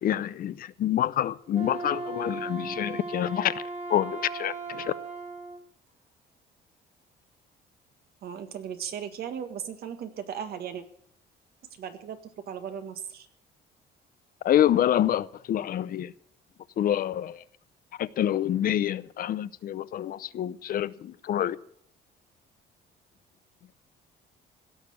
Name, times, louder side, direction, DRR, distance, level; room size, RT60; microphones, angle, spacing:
voice 1, 0.0-3.6 3.9-4.9 14.4-16.1 16.8-17.4 18.0-21.6, left 11 dB, 55° left, 0.7 m, -27 dB
Wind instrument woodwind instrument, 1.5-5.6, right 3 dB, 35° right, 2.3 m, -37 dB
voice 2, 8.2-10.8 11.7-13.3, right 8 dB, 65° right, 1.8 m, -37 dB
16.5 x 6.6 x 9.6 m
cardioid pair, 115°, 18 cm